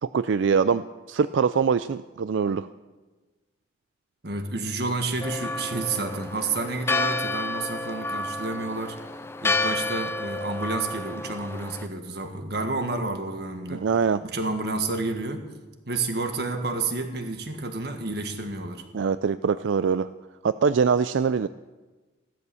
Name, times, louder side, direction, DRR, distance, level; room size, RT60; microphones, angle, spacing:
voice 1, 0.0-2.7 13.7-14.2 18.9-20.1 20.4-21.5, right 6 dB, 85° right, 13 dB, 0.4 m, -23 dB
voice 2, 4.2-9.0 9.4-13.8 14.2-15.4 15.9-18.8, right 3 dB, 60° right, 6 dB, 1.8 m, -30 dB
Church bell, 5.2-11.9, left 2 dB, 15° left, 0.5 m, -30 dB
15.5 x 12.5 x 7.0 m, 1.2 s
head